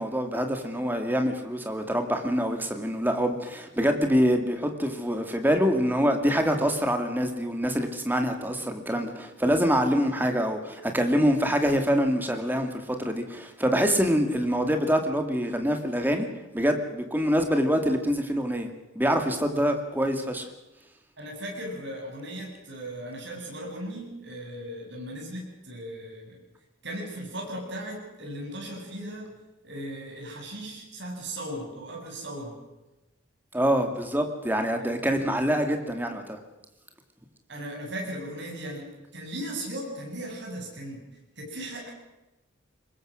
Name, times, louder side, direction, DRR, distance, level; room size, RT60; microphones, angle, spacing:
voice 1, 0.0-16.3 16.5-18.7 19.0-20.5 33.5-36.4, equal, 10° right, 5 dB, 2.1 m, -25 dB
voice 2, 21.2-26.4 26.8-29.3 29.6-32.6 34.8-35.0 37.5-38.9 39.1-41.0 41.4-41.9, right 1 dB, 60° right, -1 dB, 7.8 m, -37 dB
24.0 x 21.0 x 6.4 m, 1.0 s
head